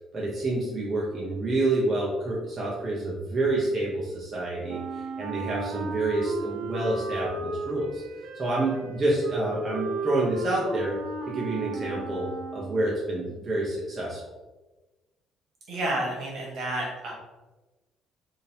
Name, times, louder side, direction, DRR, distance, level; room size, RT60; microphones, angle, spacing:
voice 1, 0.1-8.0 8.3-11.0 11.3-12.2 12.5-14.2, right 2 dB, 25° right, -5 dB, 0.7 m, -28 dB
Wind instrument woodwind instrument, 4.7-13.0, right 3 dB, 80° right, 0.4 m, -35 dB
voice 2, 15.7-17.1, right 1 dB, 60° right, -3 dB, 1.3 m, -30 dB
3.6 x 2.7 x 2.7 m, 1.2 s
cardioid pair, 130°, 0 cm